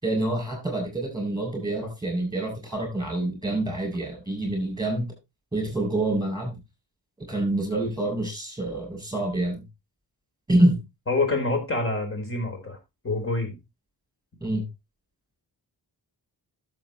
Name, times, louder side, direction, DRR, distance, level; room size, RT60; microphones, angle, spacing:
voice 1, 0.0-5.1 5.5-6.6 7.3-9.6 10.5-10.8 14.4-14.6, right 1 dB, 10° right, 2 dB, 7.9 m, -26 dB
voice 2, 11.1-12.8 13.0-13.6, left 2 dB, 35° left, 4 dB, 4.5 m, -26 dB
12.5 x 7.6 x 3.1 m, 0.23 s
wide cardioid pair, 125°, 40 cm